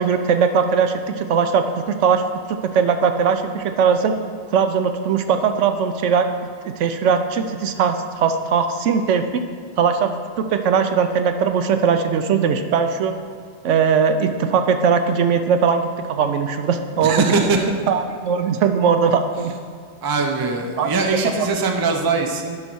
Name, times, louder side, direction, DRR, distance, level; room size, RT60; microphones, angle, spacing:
voice 1, 0.0-2.2 2.6-4.1 4.5-6.3 6.6-9.4 9.8-10.1 10.4-13.1 13.6-17.3 17.9-19.6 20.8-20.9 21.4-21.5, right 6 dB, 75° right, 7 dB, 0.9 m, -19 dB
voice 2, 17.0-17.7 20.0-22.6, right 4 dB, 25° right, 3 dB, 0.5 m, -21 dB
10.5 x 4.0 x 6.1 m, 2.1 s
omnidirectional pair, 1.3 m